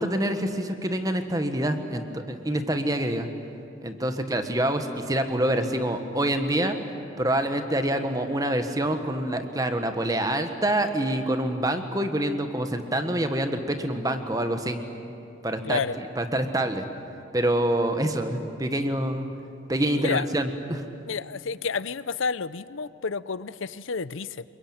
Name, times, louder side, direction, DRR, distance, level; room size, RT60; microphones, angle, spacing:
voice 1, 0.0-3.3 3.8-6.8 7.2-14.8 15.4-15.8 16.2-16.8 17.3-19.3 19.7-20.8, right 1 dB, 20° right, 7 dB, 1.4 m, -26 dB
voice 2, 15.6-16.0 19.9-20.3 21.1-24.4, left 5 dB, 75° left, 16 dB, 0.7 m, -30 dB
28.0 x 22.5 x 8.9 m, 2.7 s
head